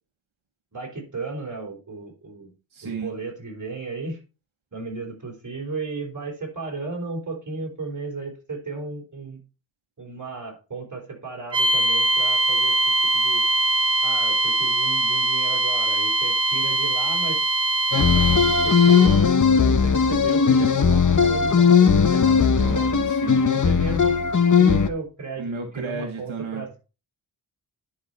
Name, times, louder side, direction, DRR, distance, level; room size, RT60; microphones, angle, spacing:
voice 1, 0.7-2.5 2.8-4.2 4.7-9.4 10.0-12.7 13.1-13.4 14.0-17.4 17.9-19.2 19.6-22.8 23.5-24.2 24.6-26.8, right 3 dB, 40° right, 0 dB, 4.1 m, -34 dB
voice 2, 2.7-3.1 22.4-23.5 25.4-26.6, right 4 dB, 80° right, 3 dB, 1.5 m, -33 dB
sound 1, 11.5-19.2, right 2 dB, 65° right, 1.7 m, -22 dB
sound 2, 17.9-24.9, left 6 dB, 40° left, 1.0 m, -18 dB
10.5 x 5.8 x 4.1 m, 0.32 s
wide cardioid pair, 70°, 47 cm